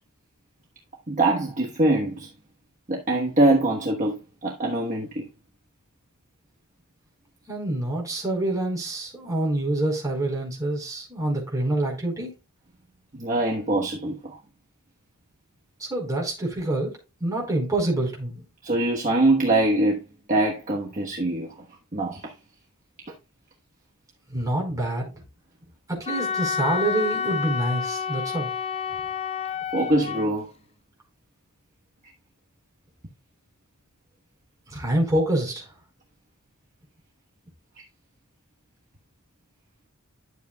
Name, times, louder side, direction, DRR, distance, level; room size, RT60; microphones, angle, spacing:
voice 1, 1.1-2.3 2.9-5.3 13.2-14.4 18.6-20.0 20.3-21.5 21.9-22.2 29.7-30.5, right 2 dB, 35° right, 1.2 m, -23 dB
voice 2, 7.5-12.3 15.8-16.9 17.2-18.4 24.3-25.1 25.9-28.5 34.7-35.7, right 1 dB, 15° right, 4.5 m, -26 dB
Wind instrument woodwind instrument, 26.1-30.3, left 6 dB, 30° left, 0.4 m, -29 dB
11.5 x 8.0 x 2.3 m
head